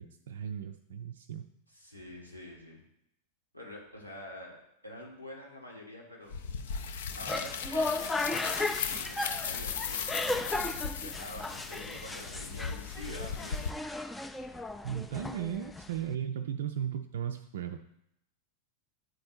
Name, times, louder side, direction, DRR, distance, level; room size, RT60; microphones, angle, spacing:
voice 1, 0.0-1.5 14.8-17.8, right 9 dB, 60° right, 5 dB, 0.4 m, -36 dB
voice 2, 1.7-2.8 3.5-4.6 4.8-6.4 7.2-10.7 11.0-13.7, left 1 dB, 90° left, -2 dB, 1.6 m, -47 dB
sound 1, 6.3-13.7, left 6 dB, 60° left, 0.5 m, -37 dB
sound 2, 7.1-16.1, left 2 dB, 5° left, 0.4 m, -36 dB
9.0 x 4.2 x 4.4 m, 0.78 s
figure-of-eight pair, 90°, 0 cm